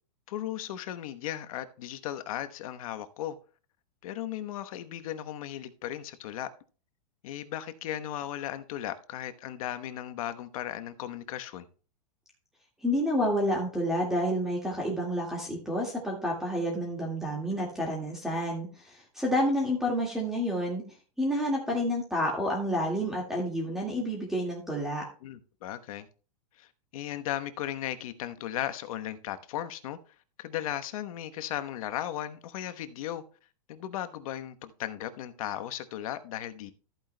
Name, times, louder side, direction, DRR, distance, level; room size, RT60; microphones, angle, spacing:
voice 1, 0.3-3.4 4.0-6.5 7.2-11.7 25.2-26.1 26.6-30.0 30.4-33.2 33.7-36.7, left 12 dB, 60° left, 1.1 m, -36 dB
voice 2, 12.8-20.8 21.2-25.0, equal, ahead, 1.9 m, -29 dB
14.0 x 9.0 x 2.2 m
supercardioid pair, 150°, 21 cm